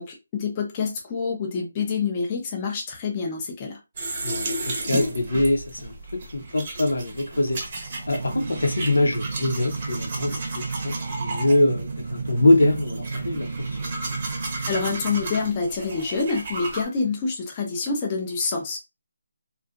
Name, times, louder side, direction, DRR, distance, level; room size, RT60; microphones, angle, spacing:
voice 1, 0.0-3.8 14.6-18.8, left 4 dB, 20° left, 0.5 m, -27 dB
sound 1, 4.0-16.9, right 2 dB, 35° right, 0.7 m, -34 dB
voice 2, 4.2-5.9 6.3-7.6 8.1-13.9, left 1 dB, 85° left, 0.9 m, -23 dB
sound 2, 7.7-16.0, right 4 dB, 75° right, 0.4 m, -33 dB
2.7 x 2.3 x 2.4 m
hypercardioid pair, 170°, 0 cm